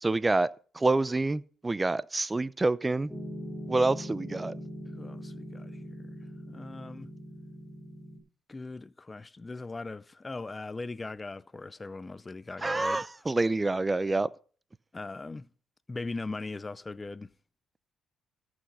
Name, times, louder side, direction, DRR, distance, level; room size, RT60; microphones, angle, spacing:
voice 1, 0.0-3.1 3.7-4.5 12.6-14.3, right 2 dB, 20° right, 0.5 m, -27 dB
Piano, 3.1-8.2, equal, ahead, 4.7 m, -41 dB
voice 2, 4.9-6.1 6.5-7.1 8.5-13.1 14.9-15.5 15.9-17.3, left 3 dB, 25° left, 0.5 m, -40 dB
14.0 x 6.2 x 5.4 m
cardioid pair, 80°, 0 cm